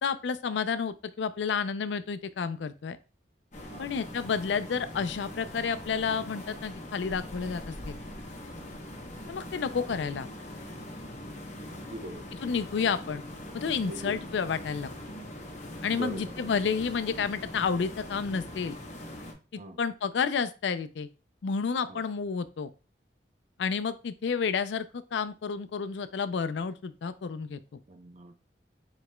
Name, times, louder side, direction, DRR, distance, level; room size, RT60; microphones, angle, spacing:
voice 1, 0.0-3.0 3.8-8.0 9.3-10.3 12.4-13.2 13.5-14.9 15.8-18.8 19.5-21.1 21.4-22.7 23.6-27.8, left 6 dB, 90° left, 13 dB, 0.4 m, -30 dB
sound 1, 3.5-19.3, left 1 dB, 45° left, 0.9 m, -42 dB
voice 2, 11.7-12.2 13.8-14.2 15.9-16.3 19.6-19.8 21.9-22.0 27.9-28.4, right 1 dB, 40° right, 8 dB, 0.6 m, -41 dB
4.9 x 4.0 x 2.2 m, 0.32 s
head